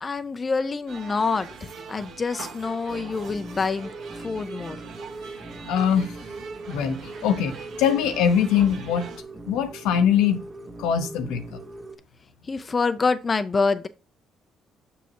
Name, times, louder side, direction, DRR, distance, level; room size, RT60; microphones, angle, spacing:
voice 1, 0.0-3.9 4.2-4.8 12.5-13.9, left 4 dB, 35° left, 0.6 m, -26 dB
sound 1, 0.9-9.2, right 5 dB, 75° right, 1.6 m, -42 dB
sound 2, 2.9-12.0, right 2 dB, 30° right, 1.5 m, -40 dB
voice 2, 5.7-6.2 6.7-9.1 9.5-10.4 10.8-11.6, left 8 dB, 80° left, 0.9 m, -22 dB
7.1 x 6.0 x 3.0 m
supercardioid pair, 60°, 0 cm